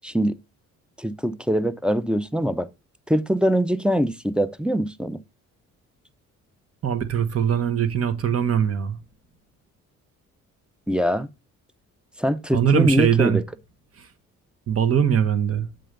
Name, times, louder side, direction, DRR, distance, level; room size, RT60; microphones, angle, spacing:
voice 1, 0.0-0.4 1.0-2.7 3.1-5.2 10.9-11.3 12.2-13.4, equal, 5° right, 0.5 m, -23 dB
voice 2, 6.8-9.0 12.5-13.4 14.0-14.1 14.7-15.7, right 8 dB, 50° right, 1.0 m, -21 dB
7.7 x 3.3 x 5.1 m
cardioid pair, 90°, 30 cm